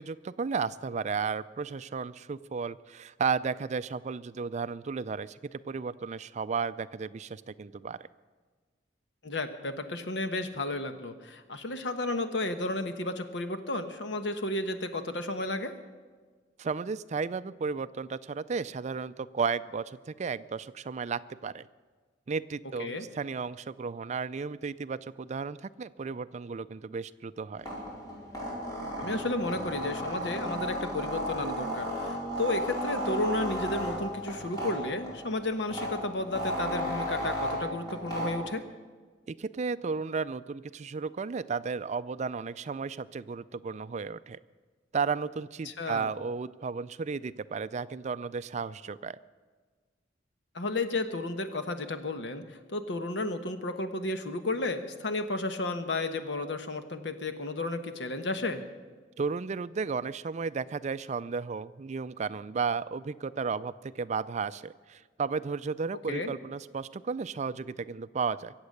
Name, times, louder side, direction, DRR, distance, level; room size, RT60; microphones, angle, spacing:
voice 1, 0.0-8.1 16.6-21.7 22.3-27.7 39.3-44.4 44.9-49.2 59.2-68.5, right 5 dB, 40° right, 15 dB, 0.4 m, -34 dB
voice 2, 9.2-15.8 22.8-23.1 29.0-38.6 45.6-46.1 50.5-58.6 66.1-66.3, left 2 dB, 70° left, 8 dB, 1.1 m, -33 dB
sound 1, 27.6-38.5, equal, 20° left, 4.3 m, -34 dB
23.0 x 8.0 x 6.6 m, 1.4 s
head